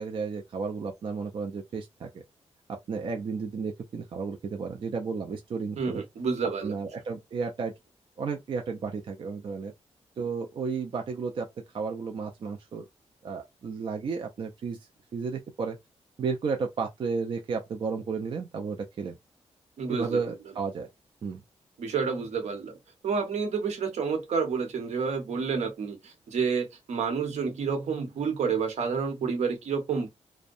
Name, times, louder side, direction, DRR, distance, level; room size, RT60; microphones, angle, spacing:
voice 1, 0.0-2.2 2.9-6.0 6.6-7.7 8.2-9.7 10.2-11.5 11.7-12.9 13.2-14.8 15.1-15.8 16.2-19.2 19.9-20.9 21.2-21.4, right 5 dB, 45° right, 0.4 m, -33 dB
voice 2, 5.8-6.7 19.8-20.2 21.8-22.8 23.0-30.1, right 5 dB, 75° right, 0.9 m, -29 dB
2.6 x 2.1 x 2.4 m
wide cardioid pair, 135°, 12 cm